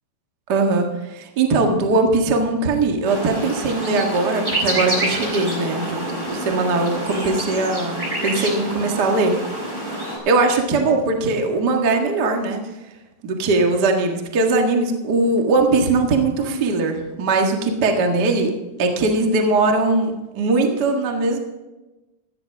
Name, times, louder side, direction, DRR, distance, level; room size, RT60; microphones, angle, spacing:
voice 1, 0.5-9.3 9.6-9.8 10.2-12.6 13.2-18.5 18.8-21.4, right 3 dB, 45° right, 2 dB, 1.3 m, -20 dB
sound 1, 3.0-10.2, right 1 dB, 10° right, 3.9 m, -27 dB
16.0 x 13.5 x 3.5 m, 1.1 s
omnidirectional pair, 4.5 m